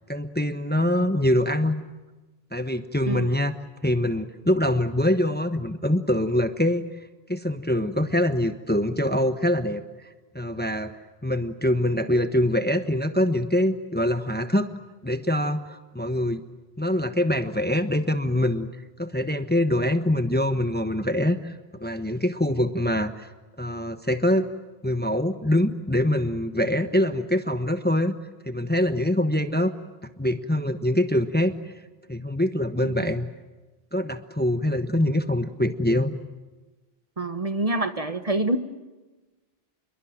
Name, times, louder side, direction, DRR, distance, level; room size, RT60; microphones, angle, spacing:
voice 1, 0.1-1.8 2.5-3.6 3.8-6.9 7.3-9.8 10.3-10.9 11.2-14.7 15.0-16.4 16.8-18.7 19.0-21.5 21.8-23.3 23.6-24.5 24.8-28.2 28.5-29.7 30.0-31.5 32.1-33.3 33.9-36.2, left 1 dB, 10° left, 9 dB, 1.1 m, -24 dB
voice 2, 32.8-33.1 35.0-35.2 37.2-38.6, right 1 dB, 35° right, 9 dB, 1.4 m, -27 dB
27.5 x 23.0 x 8.9 m, 1.2 s
omnidirectional pair, 1.0 m